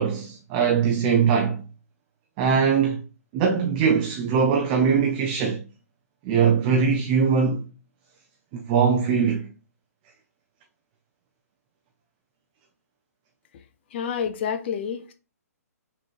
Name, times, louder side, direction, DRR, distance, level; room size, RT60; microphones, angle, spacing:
voice 1, 0.0-1.6 2.4-3.0 3.3-5.6 6.2-7.6 8.5-9.5, right 6 dB, 30° right, 0.6 m, -21 dB
voice 2, 13.9-15.1, left 7 dB, 40° left, 0.6 m, -28 dB
5.7 x 3.2 x 2.5 m
figure-of-eight pair, 130°, 9 cm